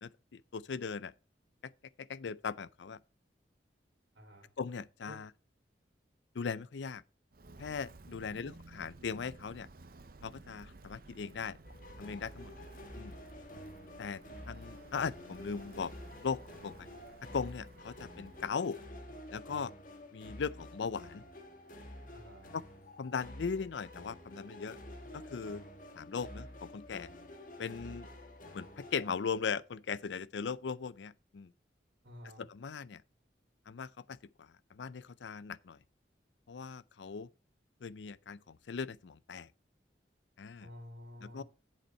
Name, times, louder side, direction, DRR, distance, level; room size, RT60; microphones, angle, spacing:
voice 1, 0.0-1.1 2.0-3.0 4.6-5.3 6.3-7.0 7.6-9.7 10.2-11.6 12.0-12.5 13.0-13.2 14.0-14.2 14.5-15.9 16.2-16.9 17.3-18.8 19.3-19.7 20.1-21.2 22.5-22.6 23.0-24.8 25.1-25.6 26.0-27.1 27.6-28.1 28.5-31.5 32.4-33.0 33.7-35.8 36.5-37.3 37.8-39.5 40.4-40.7 41.2-41.4, left 5 dB, 80° left, 0.5 m, -39 dB
voice 2, 4.1-4.5 5.1-5.2 8.2-8.6 22.1-22.5 32.0-32.5 40.6-41.4, equal, 85° right, 2.6 m, -51 dB
Walk footsteps, 7.3-18.6, right 2 dB, 55° right, 0.7 m, -55 dB
sound 1, 11.6-29.8, left 1 dB, 45° left, 1.5 m, -50 dB
8.1 x 7.2 x 4.3 m
head